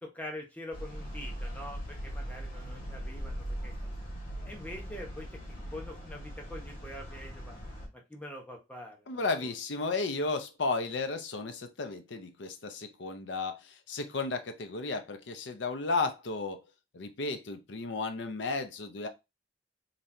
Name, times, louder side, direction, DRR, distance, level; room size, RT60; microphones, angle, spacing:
voice 1, 0.0-3.7 4.5-7.6 8.1-9.3, left 1 dB, 10° left, 1.0 m, -44 dB
sound 1, 0.7-7.9, equal, 50° left, 1.7 m, -40 dB
voice 2, 9.1-16.6 16.9-19.1, left 3 dB, 85° left, 0.7 m, -34 dB
4.0 x 3.2 x 2.7 m
head